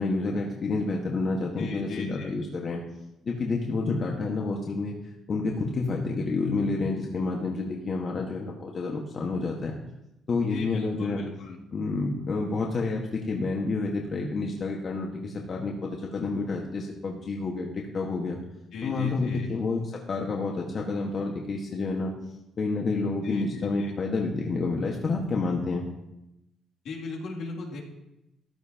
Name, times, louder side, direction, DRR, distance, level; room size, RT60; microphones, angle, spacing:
voice 1, 0.0-2.8 3.2-9.8 10.3-11.2 11.7-15.7 16.1-18.4 18.8-22.1 22.6-25.9, left 3 dB, 50° left, -1 dB, 1.6 m, -29 dB
voice 2, 1.6-2.4 10.5-11.6 18.7-19.5 23.2-23.9 26.8-27.8, left 4 dB, 75° left, -3 dB, 2.7 m, -37 dB
14.0 x 11.0 x 2.9 m, 0.89 s
cardioid pair, 90°, 0 cm